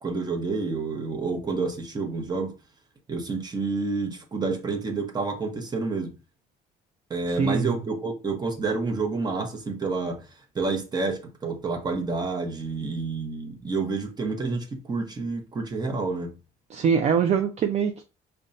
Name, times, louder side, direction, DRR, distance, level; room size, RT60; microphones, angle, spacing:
voice 1, 0.0-2.5 3.1-6.1 7.1-10.3 10.5-16.4, right 3 dB, 25° right, 0.8 m, -29 dB
voice 2, 7.3-7.8 16.7-18.0, right 6 dB, 40° right, 0.4 m, -23 dB
5.2 x 2.2 x 2.6 m
cardioid pair, 110°, 17 cm